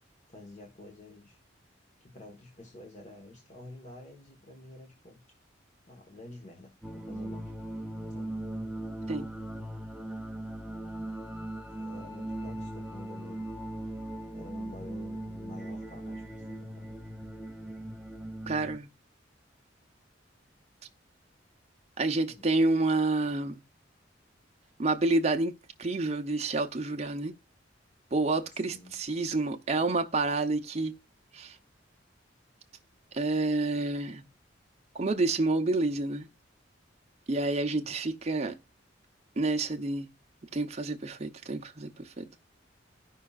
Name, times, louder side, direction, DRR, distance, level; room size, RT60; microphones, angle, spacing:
voice 1, 0.0-1.4 2.0-5.2 5.9-7.5 8.1-8.4 11.7-13.5 13.8-14.0 14.3-17.0 22.2-22.5 28.5-28.9 37.7-38.0, left 2 dB, 40° left, 1.3 m, -49 dB
sound 1, 6.8-18.8, right 1 dB, 5° right, 0.6 m, -39 dB
voice 2, 18.5-18.9 22.0-23.6 24.8-27.3 28.1-30.9 31.3-31.6 33.1-34.2 34.9-36.3 37.3-38.6 39.4-40.1 40.5-42.4, right 2 dB, 35° right, 0.7 m, -29 dB
14.5 x 5.6 x 2.4 m
head